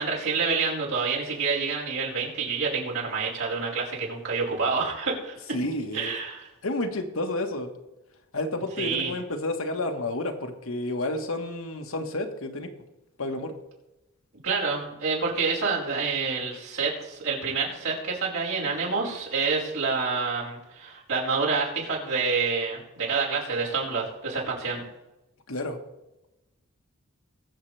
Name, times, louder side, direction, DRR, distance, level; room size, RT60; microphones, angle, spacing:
voice 1, 0.0-5.4 5.9-6.5 8.8-9.1 14.4-24.8, right 4 dB, 80° right, -5 dB, 4.8 m, -28 dB
voice 2, 5.5-6.1 6.6-7.7 8.3-12.7 13.2-13.5 25.5-25.8, left 2 dB, 70° left, 5 dB, 1.5 m, -30 dB
22.0 x 7.5 x 3.4 m, 0.98 s
head